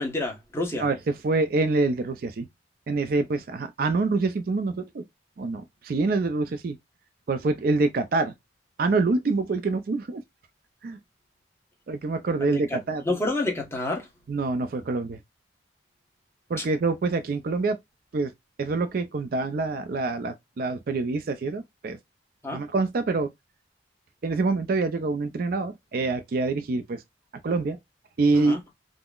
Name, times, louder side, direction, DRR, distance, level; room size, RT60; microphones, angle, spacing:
voice 1, 0.0-0.8 12.7-12.8 13.0-14.1 16.6-16.7 22.4-22.6 28.5-28.6, left 2 dB, 15° left, 0.9 m, -28 dB
voice 2, 0.8-2.5 2.9-5.0 5.4-6.8 7.3-8.3 8.8-10.2 10.8-11.0 11.9-13.0 14.3-15.2 16.5-17.8 18.1-18.3 18.6-22.0 22.5-23.3 24.2-27.0 27.4-27.8 28.2-28.6, right 3 dB, 50° right, 0.4 m, -26 dB
3.6 x 2.0 x 2.3 m
head